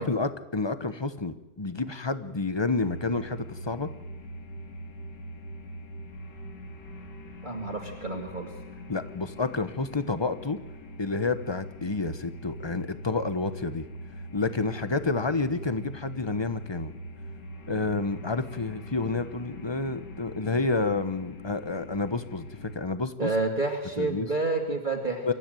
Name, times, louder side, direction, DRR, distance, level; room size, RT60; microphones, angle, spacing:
voice 1, 0.0-3.9 8.9-10.6 11.0-13.9 14.3-16.9 17.7-23.3 24.0-24.3 25.2-25.3, left 3 dB, 20° left, 12 dB, 0.9 m, -29 dB
sound 1, 2.8-22.8, equal, 85° left, 2.9 m, -43 dB
voice 2, 7.4-8.5 23.2-25.3, right 3 dB, 25° right, 0 dB, 2.6 m, -29 dB
26.0 x 13.5 x 9.2 m, 1.0 s
omnidirectional pair, 1.8 m